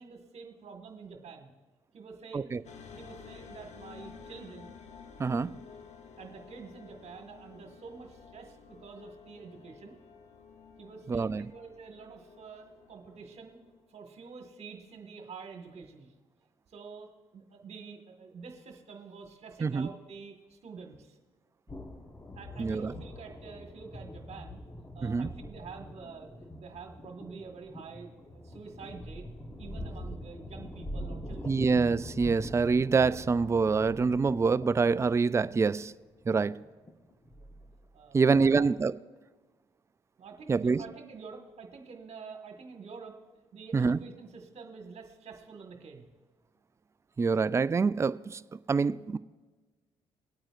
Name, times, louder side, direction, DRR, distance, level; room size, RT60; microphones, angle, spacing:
voice 1, 0.0-1.5 1.9-2.6 2.9-4.7 6.2-10.0 10.8-13.6 13.9-16.1 16.7-21.2 22.3-24.6 24.9-29.2 29.6-31.6 36.5-36.7 37.2-37.5 37.9-38.7 40.2-43.2 43.5-46.1, right 5 dB, 50° right, 1.6 m, -47 dB
sound 1, 2.6-13.9, left 6 dB, 55° left, 1.0 m, -52 dB
voice 2, 5.2-5.5 11.1-11.4 19.6-19.9 22.6-22.9 25.0-25.3 31.5-35.9 36.3-36.6 38.1-38.9 40.5-40.8 43.7-44.0 47.2-48.4 48.7-49.2, right 4 dB, 20° right, 0.3 m, -26 dB
sound 2, 21.7-37.8, equal, 20° left, 1.1 m, -44 dB
21.5 x 8.8 x 2.5 m
hypercardioid pair, 55°, 14 cm